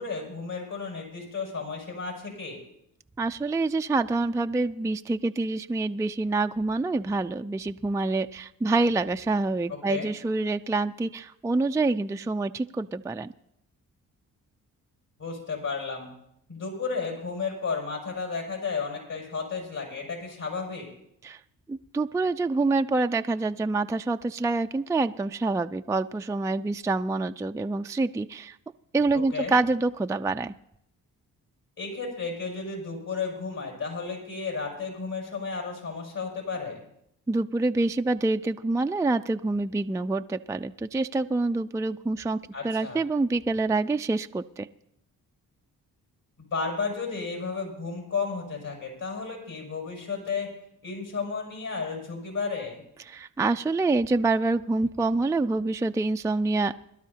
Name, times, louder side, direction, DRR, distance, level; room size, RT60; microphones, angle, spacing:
voice 1, 0.0-2.6 9.9-10.1 15.2-16.1 16.5-20.9 29.3-29.5 31.8-36.8 42.5-43.0 46.5-50.5 50.8-52.8, left 4 dB, 65° left, 0 dB, 6.7 m, -33 dB
voice 2, 3.2-13.3 21.2-21.4 21.7-28.6 28.9-30.5 37.3-42.4 42.6-44.7 53.0-56.7, right 3 dB, 10° right, 8 dB, 0.4 m, -26 dB
22.0 x 12.0 x 2.9 m, 0.75 s
supercardioid pair, 50°, 37 cm